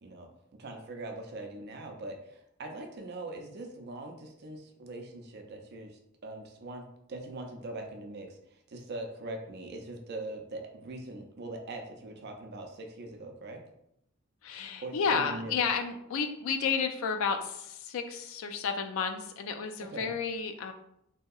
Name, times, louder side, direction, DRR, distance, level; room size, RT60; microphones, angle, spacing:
voice 1, 0.0-13.6 14.8-15.6 19.9-20.1, right 2 dB, 50° right, 3 dB, 0.4 m, -42 dB
voice 2, 14.4-20.7, left 6 dB, 70° left, 7 dB, 0.3 m, -31 dB
2.8 x 2.7 x 2.3 m, 0.78 s
head